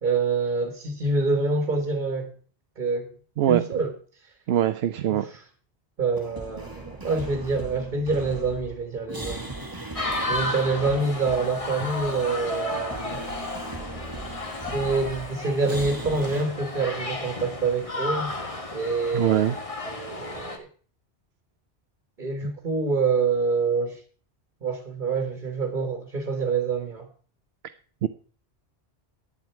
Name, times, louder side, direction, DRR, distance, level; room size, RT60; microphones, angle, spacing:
voice 1, 0.0-2.3 2.8-3.1 3.5-3.9 5.1-5.4 6.0-9.5 10.3-13.2 14.7-18.3 18.7-20.7 22.2-24.0 24.6-27.1, right 4 dB, 50° right, 6 dB, 1.6 m, -26 dB
voice 2, 4.5-5.3 19.1-19.6 22.4-22.5 28.0-28.1, right 10 dB, 70° right, 10 dB, 0.9 m, -22 dB
sound 1, 6.1-16.4, right 2 dB, 20° right, 1.5 m, -38 dB
sound 2, 10.0-20.6, left 2 dB, 30° left, 1.4 m, -33 dB
11.0 x 9.3 x 4.5 m, 0.42 s
omnidirectional pair, 1.1 m